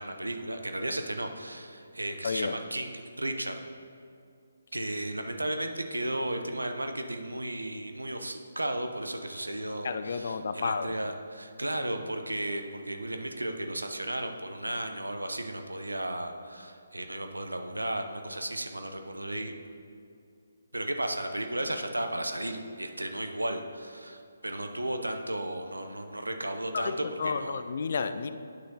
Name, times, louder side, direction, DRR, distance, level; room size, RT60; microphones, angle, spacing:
voice 1, 0.0-3.6 4.7-19.5 20.7-27.6, right 1 dB, 85° right, 6 dB, 0.6 m, -34 dB
voice 2, 2.2-2.5 9.8-10.9 26.7-28.3, left 5 dB, 50° left, 10 dB, 0.3 m, -31 dB
9.5 x 6.3 x 2.8 m, 2.4 s
figure-of-eight pair, 140°, 0 cm